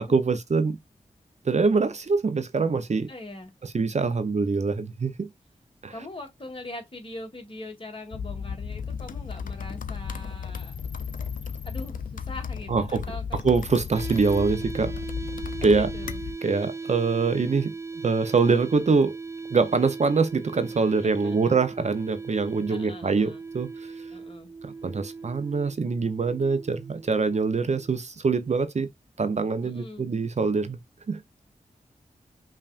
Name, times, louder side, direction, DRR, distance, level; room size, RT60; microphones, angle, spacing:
voice 1, 0.1-0.8 1.4-3.1 3.6-5.3 5.8-5.9 12.7-13.0 13.4-14.9 15.6-15.9 16.4-17.7 18.0-19.2 19.5-23.9 24.6-28.9 29.2-30.8 31.1-31.2, right 4 dB, 55° right, 0.7 m, -24 dB
voice 2, 3.1-3.5 5.9-10.8 11.7-13.6 15.6-16.2 21.0-21.6 22.7-23.4 24.1-24.5 29.6-30.1, left 1 dB, 40° left, 1.7 m, -41 dB
sound 1, 8.1-16.4, left 6 dB, 75° left, 0.5 m, -34 dB
sound 2, 13.9-27.9, right 4 dB, 20° right, 0.3 m, -38 dB
5.6 x 2.4 x 2.4 m
cardioid pair, 60°, 14 cm